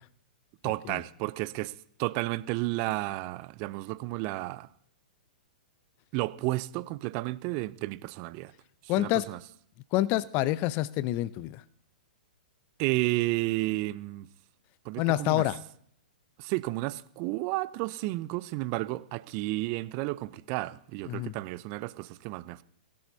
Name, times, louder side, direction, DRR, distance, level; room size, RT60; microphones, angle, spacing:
voice 1, 0.6-1.7 2.0-4.7 6.1-8.5 8.8-9.4 12.8-14.3 14.8-15.5 16.4-22.6, right 19 dB, 40° right, 0.6 m, -32 dB
voice 2, 8.9-9.3 9.9-11.6 15.0-15.6 21.1-21.3, left 16 dB, 35° left, 0.6 m, -27 dB
18.0 x 16.5 x 2.8 m
hypercardioid pair, 115°, 5 cm